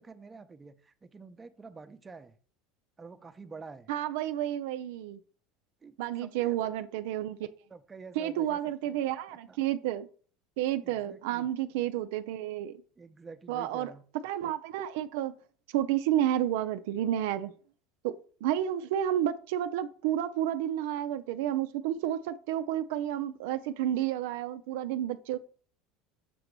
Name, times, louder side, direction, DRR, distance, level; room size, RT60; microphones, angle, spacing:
voice 1, 0.0-2.4 3.0-3.9 5.8-6.7 7.7-8.6 8.8-9.0 9.5-9.6 10.8-11.5 13.0-14.0, right 4 dB, 20° right, 0.7 m, -48 dB
voice 2, 3.9-5.2 6.0-7.5 8.2-10.1 10.6-12.8 13.5-13.9 14.2-15.3 15.7-17.5 18.0-25.4, right 11 dB, 75° right, 0.4 m, -31 dB
6.8 x 3.0 x 5.2 m
supercardioid pair, 100°, 0 cm